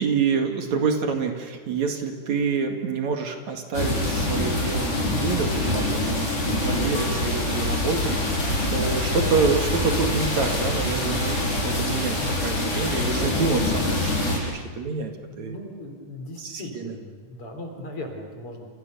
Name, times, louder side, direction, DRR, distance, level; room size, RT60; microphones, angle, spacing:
voice 1, 0.0-6.3 6.6-15.6 16.4-16.9, right 5 dB, 65° right, 4 dB, 3.4 m, -27 dB
sound 1, 3.7-14.4, left 1 dB, 80° left, 9.0 m, -25 dB
voice 2, 15.3-18.7, left 1 dB, 45° left, 3 dB, 4.8 m, -38 dB
29.0 x 28.0 x 6.9 m, 1.5 s
omnidirectional pair, 3.5 m